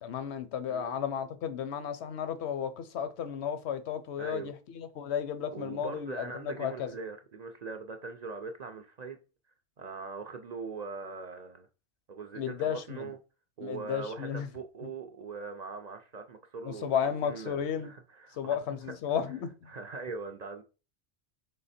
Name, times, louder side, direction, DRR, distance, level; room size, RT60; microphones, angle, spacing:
voice 1, 0.0-6.9 12.3-13.1 13.6-14.5 16.6-17.9 18.3-19.7, left 8 dB, 80° left, 0.9 m, -33 dB
voice 2, 0.7-1.0 4.2-4.5 5.5-9.2 9.8-11.7 12.1-13.2 13.6-18.6 19.7-20.6, right 4 dB, 55° right, 0.5 m, -41 dB
3.9 x 3.2 x 4.1 m
omnidirectional pair, 1.1 m